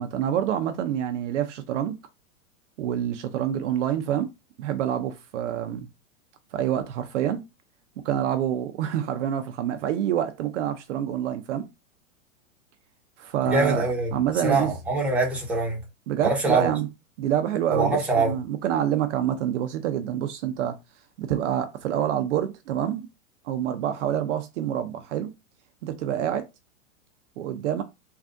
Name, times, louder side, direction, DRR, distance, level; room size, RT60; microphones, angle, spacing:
voice 1, 0.0-2.0 2.8-4.3 4.6-5.9 6.5-7.4 8.0-11.7 13.2-14.7 16.1-16.9 17.2-20.8 21.2-23.1 23.4-25.3 25.8-26.5 27.4-27.8, right 10 dB, 60° right, 0.5 m, -27 dB
voice 2, 13.4-14.1 14.4-15.8 16.2-16.7 17.7-18.4, right 2 dB, 5° right, 0.9 m, -24 dB
3.5 x 2.4 x 2.5 m
hypercardioid pair, 130°, 42 cm